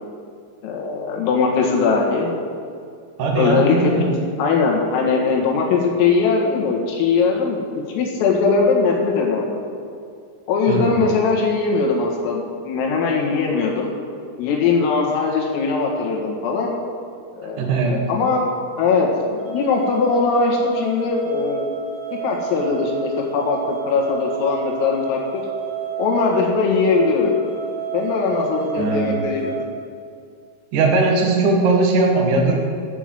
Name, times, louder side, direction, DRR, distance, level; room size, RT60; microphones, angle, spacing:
voice 1, 0.6-2.3 3.4-3.9 4.4-7.6 7.9-9.6 10.5-13.9 14.4-16.7 17.4-17.7 18.1-18.4 18.8-21.7 22.2-25.4 26.0-27.3 27.9-29.6, left 4 dB, 80° left, -1 dB, 4.5 m, -20 dB
voice 2, 3.2-4.0 10.7-11.1 17.6-18.1 28.8-29.2 30.7-32.6, right 3 dB, 60° right, 0 dB, 2.3 m, -19 dB
sound 1, 19.4-29.6, right 6 dB, 30° right, 3.7 m, -31 dB
13.5 x 7.1 x 7.6 m, 2.3 s
omnidirectional pair, 5.9 m